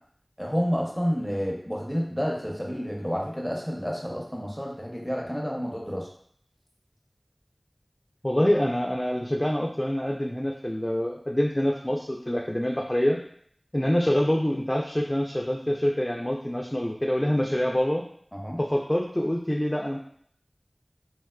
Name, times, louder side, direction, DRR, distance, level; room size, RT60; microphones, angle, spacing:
voice 1, 0.4-6.1 18.3-18.6, equal, 5° left, -2 dB, 0.8 m, -30 dB
voice 2, 8.2-13.2 13.7-18.0 18.6-20.0, equal, 25° left, -1 dB, 0.4 m, -26 dB
3.4 x 3.0 x 2.3 m, 0.62 s
wide cardioid pair, 40°, 0 cm